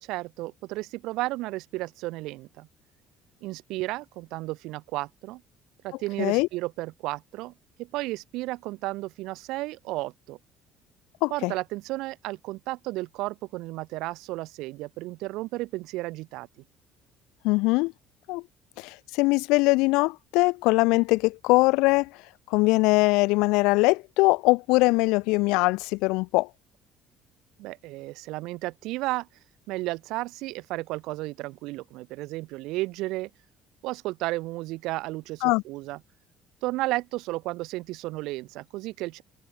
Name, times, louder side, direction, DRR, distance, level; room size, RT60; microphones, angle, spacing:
voice 1, 0.0-2.7 3.4-5.4 5.8-7.5 7.8-10.4 11.3-16.5 27.6-29.3 29.7-33.3 33.8-36.0 36.6-39.2, right 19 dB, 80° right, 1.9 m, -33 dB
voice 2, 11.2-11.5 17.4-17.9 18.3-18.4 18.8-22.1 22.5-26.5 35.4-35.6, left 24 dB, 90° left, 0.6 m, -22 dB
open air
cardioid pair, 120°, 0 cm